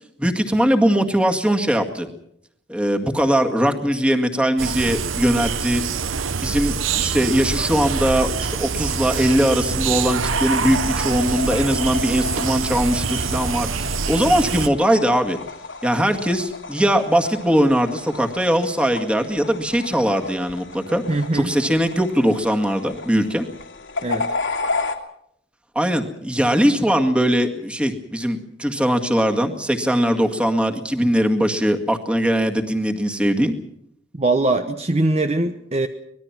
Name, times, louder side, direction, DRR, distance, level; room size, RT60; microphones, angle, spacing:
voice 1, 0.2-2.1 2.7-6.0 6.4-15.4 15.8-21.0 21.3-23.5 25.8-33.5, equal, 5° right, 4 dB, 1.9 m, -20 dB
sound 1, 4.6-14.7, right 5 dB, 90° right, 0.9 m, -25 dB
sound 2, 8.5-25.0, left 3 dB, 80° left, 2.7 m, -33 dB
voice 2, 21.1-21.5 24.0-24.3 34.1-35.9, right 2 dB, 35° right, 7 dB, 1.0 m, -21 dB
25.0 x 20.0 x 6.0 m, 0.72 s
head